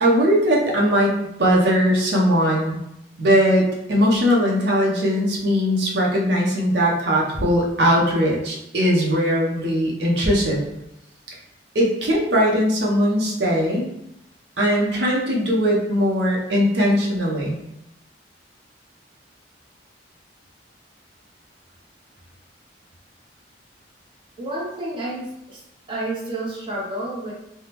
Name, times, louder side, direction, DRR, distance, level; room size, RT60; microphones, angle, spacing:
voice 1, 0.0-2.8 3.2-10.6 11.7-13.9 14.6-17.6, equal, 65° right, -3 dB, 0.7 m, -20 dB
voice 2, 24.4-25.6 25.9-27.3, right 1 dB, 30° right, -6 dB, 0.7 m, -30 dB
3.5 x 2.0 x 2.9 m, 0.83 s
head